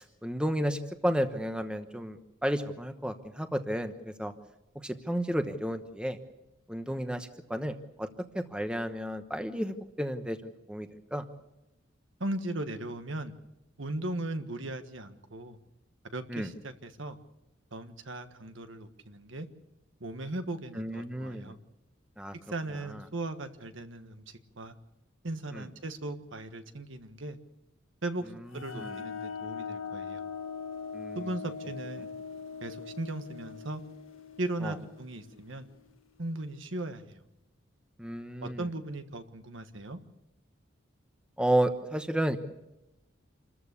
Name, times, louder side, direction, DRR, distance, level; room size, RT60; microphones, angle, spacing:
voice 1, 0.0-4.3 4.7-6.2 6.7-8.1 8.3-10.4 10.7-11.2 16.3-16.5 20.8-21.5 22.2-22.3 25.5-25.6 28.7-28.9 30.9-31.2 34.6-34.7 38.0-38.6 41.4-42.4, right 1 dB, 5° right, 8 dB, 1.0 m, -32 dB
voice 2, 12.2-13.3 13.8-15.6 16.1-17.2 17.7-19.5 20.0-21.6 22.5-24.7 25.2-27.4 28.0-30.2 31.1-32.1 32.6-33.8 34.4-35.7 36.2-37.2 38.4-40.0, right 2 dB, 70° right, 8 dB, 1.5 m, -37 dB
sound 1, 28.6-36.0, left 6 dB, 85° left, 1.6 m, -41 dB
27.5 x 14.0 x 8.4 m, 0.93 s
head